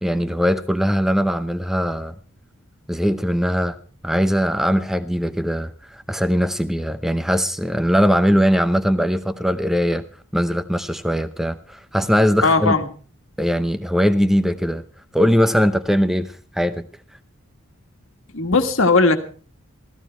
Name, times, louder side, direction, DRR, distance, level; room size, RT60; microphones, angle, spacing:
voice 1, 0.0-2.1 2.9-3.8 4.0-10.0 10.3-12.7 13.4-14.8 15.1-16.9, equal, ahead, 0.7 m, -20 dB
voice 2, 12.4-12.9 18.3-19.2, left 3 dB, 75° left, 1.6 m, -17 dB
15.0 x 14.5 x 4.5 m
head